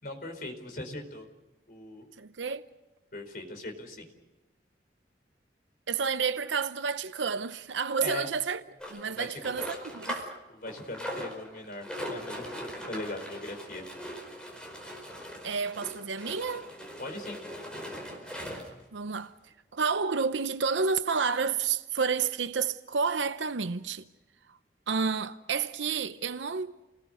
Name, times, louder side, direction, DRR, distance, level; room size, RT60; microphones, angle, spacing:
voice 1, 0.0-1.3 1.7-2.1 3.1-4.1 8.0-8.3 9.2-9.4 10.5-13.8 17.0-17.4, left 1 dB, 50° left, 4.5 m, -40 dB
voice 2, 2.2-2.7 5.9-8.6 8.9-10.3 15.4-16.7 18.9-24.0 24.9-26.8, right 5 dB, 80° right, 0.7 m, -30 dB
sound 1, 8.8-10.4 10.7-18.8 19.5-19.6 19.8-19.9 20.4-20.5, equal, 5° left, 4.8 m, -40 dB
29.0 x 20.0 x 6.5 m
head